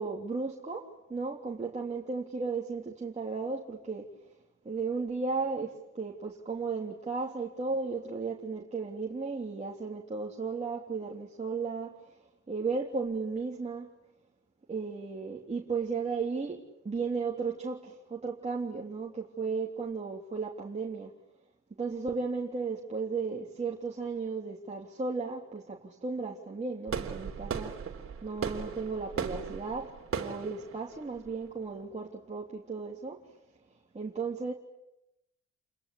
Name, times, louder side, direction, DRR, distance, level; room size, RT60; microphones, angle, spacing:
voice 1, 0.0-4.1 4.7-12.0 12.5-13.9 14.7-21.1 21.8-27.8 28.2-33.2 33.9-34.5, right 4 dB, 20° right, -2 dB, 3.4 m, -35 dB
sound 1, 26.9-31.8, right 6 dB, 45° right, 3.5 m, -37 dB
30.0 x 22.0 x 8.6 m, 0.87 s
cardioid pair, 90°, 30 cm